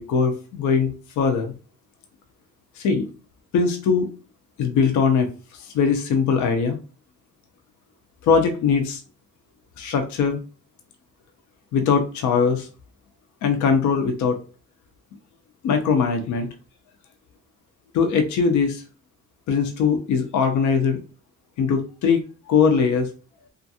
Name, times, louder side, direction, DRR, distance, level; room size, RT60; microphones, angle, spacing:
voice 1, 0.0-1.5 2.8-3.1 3.5-4.1 4.6-5.3 5.6-6.8 8.2-9.0 9.8-10.4 11.7-12.7 13.4-14.4 15.6-16.5 17.9-18.8 19.5-21.0 21.6-22.2 22.5-23.1, left 5 dB, 70° left, 5 dB, 0.6 m, -21 dB
2.5 x 2.4 x 2.6 m, 0.35 s
cardioid pair, 90°, 30 cm